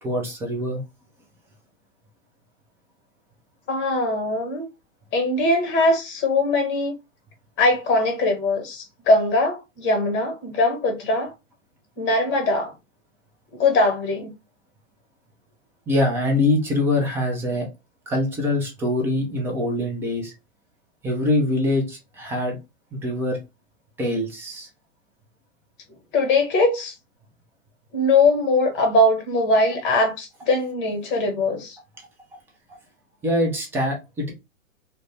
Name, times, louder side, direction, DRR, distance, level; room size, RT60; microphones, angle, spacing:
voice 1, 0.0-0.8 15.9-17.7 18.1-20.3 21.0-22.6 22.9-23.4 24.0-24.7 33.2-34.3, left 1 dB, 5° right, 0.3 m, -24 dB
voice 2, 3.7-4.7 5.1-6.9 7.6-11.3 12.0-12.7 13.5-14.3 26.1-26.9 27.9-31.8, left 2 dB, 30° left, 1.1 m, -21 dB
2.4 x 2.1 x 3.1 m
hypercardioid pair, 110°, 39 cm